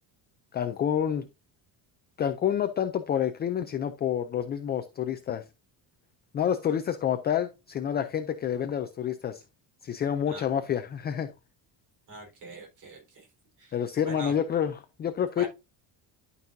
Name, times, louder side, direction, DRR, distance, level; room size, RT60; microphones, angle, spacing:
voice 1, 0.5-1.3 2.2-5.4 6.3-9.4 9.8-11.3 13.7-15.5, left 9 dB, 25° left, 0.4 m, -28 dB
voice 2, 12.1-13.3 13.6-13.7 14.0-14.3 15.4-15.5, right 2 dB, 45° right, 4.0 m, -42 dB
11.5 x 5.4 x 2.6 m
cardioid pair, 180°, 42 cm